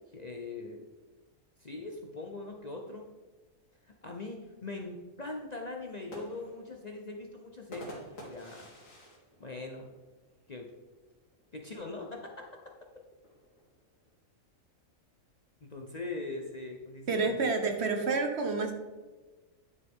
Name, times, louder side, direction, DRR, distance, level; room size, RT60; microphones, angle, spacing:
voice 1, 0.1-0.8 1.6-3.1 3.8-8.7 9.4-9.9 10.5-10.7 11.5-12.5 15.6-17.5, left 3 dB, 40° left, 1 dB, 0.7 m, -41 dB
sound 1, 5.8-10.5 10.9-11.0 11.2-11.7 12.6-14.1, equal, 75° left, 2.3 m, -49 dB
voice 2, 17.1-18.7, right 4 dB, 55° right, 5 dB, 1.2 m, -29 dB
10.0 x 6.5 x 3.6 m, 1.3 s
omnidirectional pair, 1.4 m